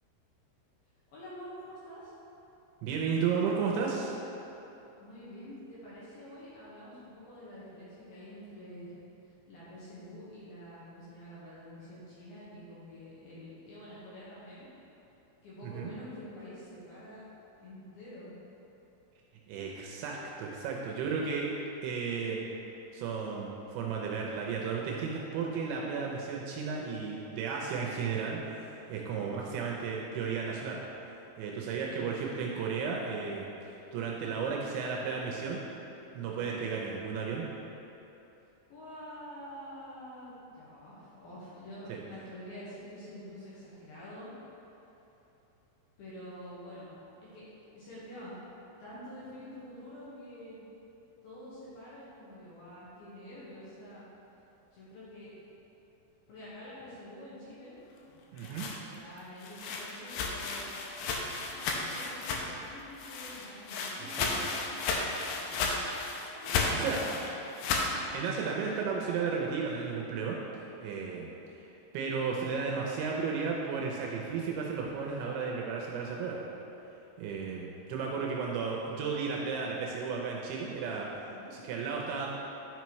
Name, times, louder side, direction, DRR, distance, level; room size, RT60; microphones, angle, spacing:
voice 1, 1.1-2.1 5.0-9.0 9.2-14.7 15.4-17.2 17.6-18.3 28.9-29.2 31.7-32.1 36.3-36.6 38.7-44.3 46.0-47.0 47.3-48.4 48.8-50.7 51.2-54.1 54.7-55.3 56.3-57.8 58.4-60.7 61.3-65.7 66.3-67.2 67.8-68.0 70.9-71.2 81.3-81.6, equal, 65° left, -10 dB, 2.7 m, -47 dB
voice 2, 2.8-4.1 15.6-15.9 19.5-21.5 21.8-22.4 22.9-30.8 31.4-35.6 36.1-37.4 41.9-42.0 58.3-58.7 64.0-64.5 66.7-67.0 68.1-70.4 70.8-71.3 71.9-76.4 77.2-81.1 81.5-82.3, right 5 dB, 80° right, -2 dB, 2.8 m, -34 dB
sound 1, 58.2-62.7 63.0-67.9, left 4 dB, 85° left, 2.6 m, -34 dB
11.0 x 5.8 x 3.1 m, 3.0 s
omnidirectional pair, 5.6 m